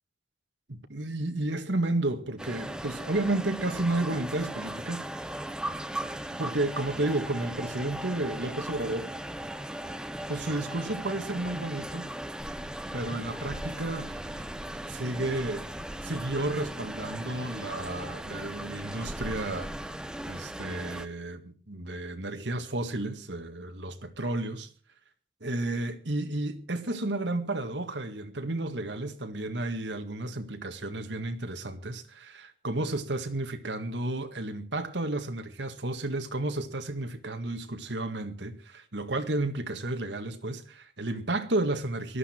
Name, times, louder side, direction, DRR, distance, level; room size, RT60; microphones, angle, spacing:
voice 1, 0.7-5.1 6.4-9.1 10.3-12.1 12.9-14.1 14.9-15.7 16.0-19.7 20.3-24.7 25.4-42.2, right 2 dB, 80° right, 1.8 m, -32 dB
sound 1, 2.4-21.1, right 1 dB, 5° right, 0.8 m, -38 dB
Water, 12.4-20.4, equal, 25° right, 7.0 m, -46 dB
18.5 x 12.5 x 4.5 m
head